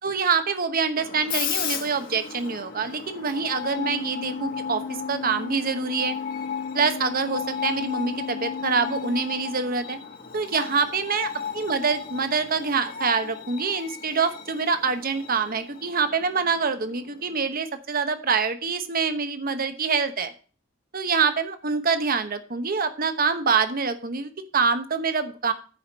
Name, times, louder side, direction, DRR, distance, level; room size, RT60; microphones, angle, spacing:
voice 1, 0.0-6.2 6.7-10.0 10.3-11.3 11.5-20.3 20.9-25.5, right 5 dB, 50° right, 9 dB, 1.0 m, -25 dB
Screech, 1.0-17.5, left 7 dB, 50° left, 1.6 m, -36 dB
Organ, 3.5-10.1, left 5 dB, 35° left, 0.6 m, -36 dB
9.4 x 5.0 x 7.2 m, 0.39 s
head